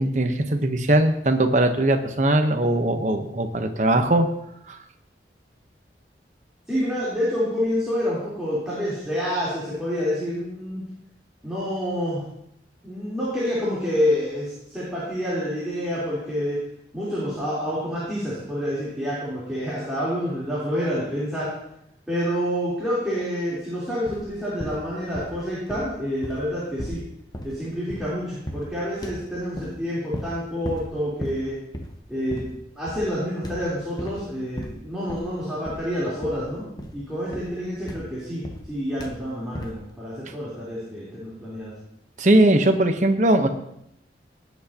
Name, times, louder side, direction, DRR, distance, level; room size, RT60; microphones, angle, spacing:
voice 1, 0.0-4.3 4.7-4.8 42.2-43.5, right 1 dB, 45° right, 6 dB, 1.0 m, -20 dB
voice 2, 6.7-10.8 11.4-12.2 12.8-16.6 16.9-21.5 22.1-27.0 27.4-31.6 32.1-32.5 32.8-36.6 36.9-38.4 38.7-41.7, equal, 5° right, -10 dB, 3.6 m, -28 dB
sound 1, 24.1-24.3 24.6-25.4 25.7-28.2 28.5-28.8 29.0-29.8 30.1-30.4 30.6-30.9 31.2-31.5 31.7-32.0 32.3-32.6 32.9-33.2 33.4-34.2 34.6-35.4 35.6-35.9 36.2-36.5 36.8-38.7 39.0-39.2 39.5-39.8, equal, 25° left, 0.9 m, -36 dB
18.0 x 8.3 x 2.9 m, 0.77 s
head